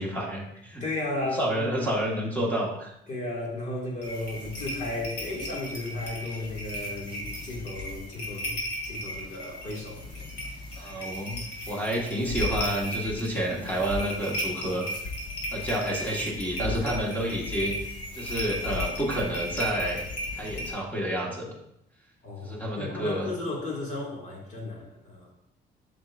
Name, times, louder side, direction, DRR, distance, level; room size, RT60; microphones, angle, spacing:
voice 1, 0.0-0.8 1.2-2.9 10.8-11.4 11.7-14.9 15.5-17.7 18.1-21.5 22.4-23.3, right 1 dB, 10° left, -3 dB, 1.5 m, -29 dB
voice 2, 0.8-1.9 3.1-8.6 8.8-11.2 22.2-25.3, left 2 dB, 40° left, -3 dB, 2.1 m, -35 dB
sound 1, 4.0-20.7, left 1 dB, 90° left, 2.2 m, -35 dB
7.6 x 6.6 x 2.5 m, 0.79 s
cardioid pair, 165°, 18 cm